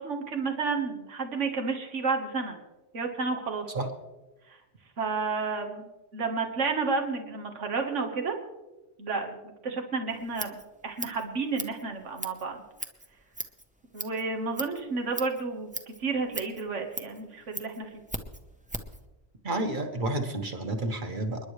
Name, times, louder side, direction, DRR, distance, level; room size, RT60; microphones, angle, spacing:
voice 1, 0.0-2.6 2.9-3.7 5.0-8.4 9.0-9.4 9.6-10.6 10.8-12.6 13.9-17.9, right 4 dB, 80° right, 3 dB, 1.9 m, -31 dB
Scissors, 10.1-19.0, right 1 dB, 5° right, 0.9 m, -40 dB
voice 2, 19.4-21.5, right 2 dB, 45° right, 4 dB, 1.7 m, -30 dB
29.5 x 10.5 x 3.3 m, 1.1 s
omnidirectional pair, 1.2 m